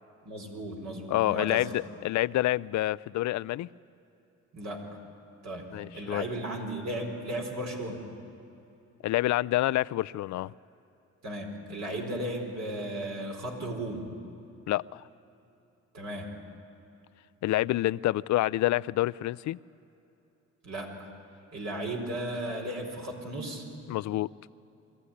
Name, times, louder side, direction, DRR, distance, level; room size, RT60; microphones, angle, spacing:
voice 1, 0.3-1.7 4.5-4.9 5.4-8.0 11.2-14.0 15.9-16.3 20.6-21.1 21.5-23.6, right 1 dB, 60° right, 1 dB, 4.3 m, -35 dB
voice 2, 1.1-3.7 5.7-6.2 9.0-10.5 14.7-15.0 17.4-19.6 23.9-24.3, left 16 dB, 70° left, 19 dB, 0.4 m, -27 dB
23.0 x 15.0 x 9.9 m, 2.9 s
cardioid pair, 90°, 30 cm